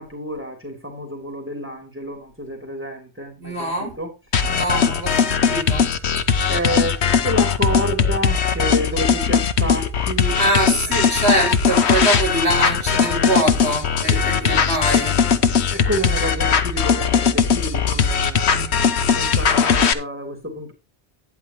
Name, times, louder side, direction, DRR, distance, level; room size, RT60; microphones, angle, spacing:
voice 1, 0.0-4.6 6.5-11.0 15.7-18.6 19.1-20.7, equal, 10° right, 3.1 m, -29 dB
voice 2, 3.4-4.0 4.4-5.9 10.4-15.2 18.4-18.7, right 1 dB, 75° right, 6.4 m, -23 dB
sound 1, 4.3-19.9, left 6 dB, 80° left, 1.2 m, -19 dB
11.5 x 10.0 x 3.0 m
omnidirectional pair, 1.1 m